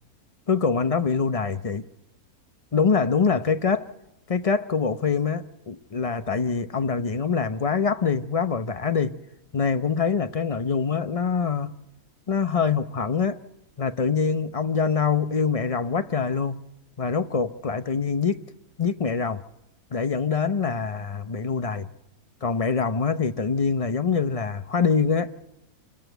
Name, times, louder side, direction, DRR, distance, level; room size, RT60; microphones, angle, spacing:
voice 1, 0.5-1.8 2.7-3.8 4.3-9.2 9.5-11.7 12.3-13.4 13.8-16.6 17.0-18.4 18.8-19.4 19.9-21.9 22.4-25.3, left 5 dB, 35° left, 0.6 m, -24 dB
26.5 x 14.0 x 8.0 m
omnidirectional pair, 1.6 m